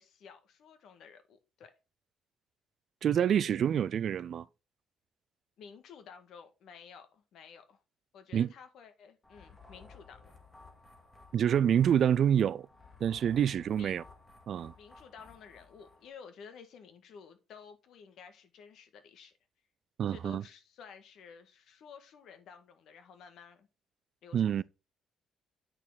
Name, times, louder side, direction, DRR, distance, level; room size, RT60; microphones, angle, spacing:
voice 1, 0.0-1.7 5.6-7.8 8.1-10.3 13.8-14.0 14.8-19.3 20.1-23.7 24.2-24.6, left 6 dB, 65° left, 1.8 m, -53 dB
voice 2, 3.0-4.4 8.3-8.5 11.3-12.7 13.0-14.0 14.5-14.7 20.0-20.4 24.3-24.6, right 9 dB, 55° right, 0.4 m, -27 dB
sound 1, 9.2-16.1, left 3 dB, 15° left, 2.2 m, -56 dB
8.9 x 6.5 x 4.0 m
cardioid pair, 125°, 0 cm